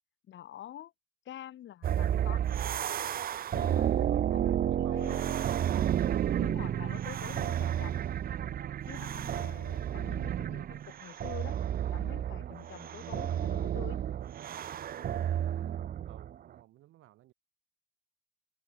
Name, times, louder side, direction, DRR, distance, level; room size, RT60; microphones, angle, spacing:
voice 1, 0.3-0.9 1.2-2.4 3.5-5.5 6.4-8.0 8.9-11.6 11.9-14.0, left 11 dB, 70° left, 2.4 m, -47 dB
sound 1, 1.8-16.3, right 10 dB, 50° right, 0.5 m, -31 dB
voice 2, 4.7-5.7 16.1-17.3, right 15 dB, 90° right, 5.9 m, -55 dB
cardioid pair, 90°, 20 cm